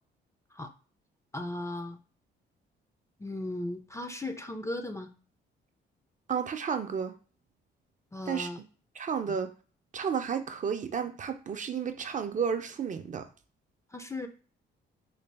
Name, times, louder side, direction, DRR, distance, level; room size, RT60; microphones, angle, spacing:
voice 1, 1.3-2.0 3.2-5.1 8.1-8.6 9.3-9.4 13.9-14.3, left 1 dB, 15° left, 0.4 m, -36 dB
voice 2, 6.3-7.2 8.3-8.5 8.9-9.5 9.9-13.3, right 7 dB, 40° right, 0.5 m, -32 dB
4.0 x 2.0 x 3.3 m
cardioid pair, 90°, 20 cm